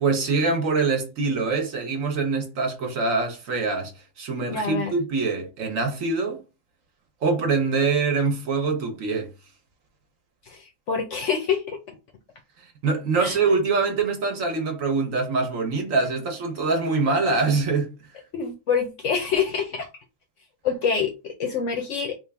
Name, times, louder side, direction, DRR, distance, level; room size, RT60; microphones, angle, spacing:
voice 1, 0.0-3.9 4.2-6.4 7.2-9.3 12.8-17.9, right 4 dB, 60° right, 1.1 m, -24 dB
voice 2, 4.5-4.9 10.5-11.9 13.2-13.6 18.3-19.9 20.6-22.2, left 6 dB, 65° left, 0.8 m, -26 dB
3.4 x 2.5 x 3.3 m
omnidirectional pair, 1.7 m